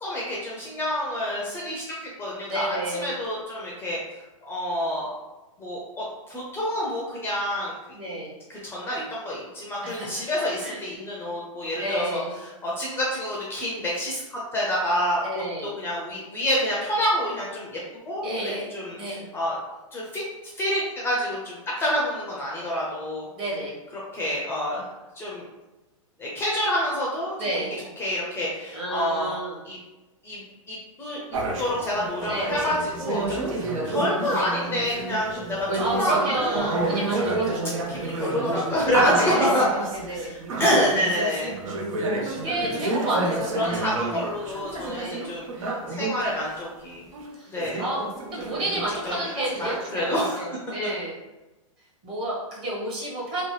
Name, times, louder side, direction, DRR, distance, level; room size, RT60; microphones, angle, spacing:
voice 1, 0.0-4.0 4.4-5.1 5.6-7.7 8.5-12.2 12.6-17.8 18.1-19.6 19.9-20.2 20.6-23.3 24.1-24.9 25.1-25.4 26.2-27.3 28.0-29.4 29.6-29.8 30.2-30.4 30.7-31.2 31.6-36.8 37.1-37.3 37.9-41.5 43.5-45.5 45.9-47.0 47.5-47.8 48.4-48.5 49.0-49.2 49.5-50.4, equal, 15° left, -4 dB, 0.5 m, -28 dB
voice 2, 2.5-3.1 7.9-8.3 9.8-10.1 10.6-10.8 11.8-12.4 15.2-15.7 18.2-18.7 19.0-19.2 23.3-23.7 27.4-27.8 28.7-29.6 32.3-32.7 35.8-37.8 39.2-39.7 39.9-40.3 42.3-43.8 45.0-45.3 47.4-47.5 47.8-48.0 48.3-51.1 52.0-53.4, right 1 dB, 30° right, -5 dB, 1.1 m, -30 dB
sound 1, 31.3-46.3 46.8-46.9 47.1-49.8, right 2 dB, 75° right, 0.7 m, -30 dB
2.9 x 2.1 x 3.1 m, 1.1 s
hypercardioid pair, 125°, 17 cm